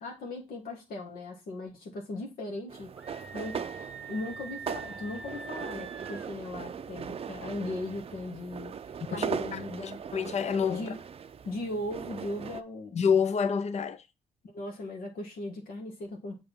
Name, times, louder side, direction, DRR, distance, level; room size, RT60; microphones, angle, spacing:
voice 1, 0.0-2.9 3.3-10.0 10.7-11.0 11.4-13.0 14.5-16.4, left 2 dB, 75° left, 1.4 m, -38 dB
sound 1, 2.7-12.6, right 7 dB, 40° right, 0.5 m, -39 dB
Screaming, 3.0-6.3, right 4 dB, 5° right, 1.0 m, -44 dB
voice 2, 9.1-10.9 12.9-14.0, left 6 dB, 45° left, 0.6 m, -28 dB
6.5 x 2.9 x 5.3 m
cardioid pair, 70°, 15 cm